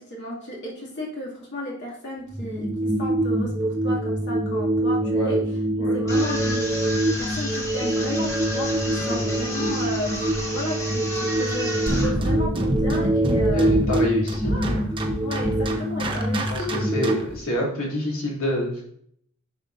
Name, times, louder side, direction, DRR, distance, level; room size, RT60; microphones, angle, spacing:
voice 1, 0.0-13.8 14.4-14.7 15.2-16.7, left 1 dB, 55° left, -4 dB, 2.4 m, -34 dB
sound 1, 2.3-17.1, right 1 dB, 5° right, 0.5 m, -25 dB
sound 2, 6.1-12.1, left 1 dB, 15° left, 2.0 m, -32 dB
sound 3, 11.9-17.4, right 1 dB, 25° right, 0.9 m, -27 dB
voice 2, 13.5-14.8 16.5-16.6 16.9-18.8, left 1 dB, 75° left, -4 dB, 3.0 m, -27 dB
10.0 x 5.9 x 2.6 m, 0.66 s
head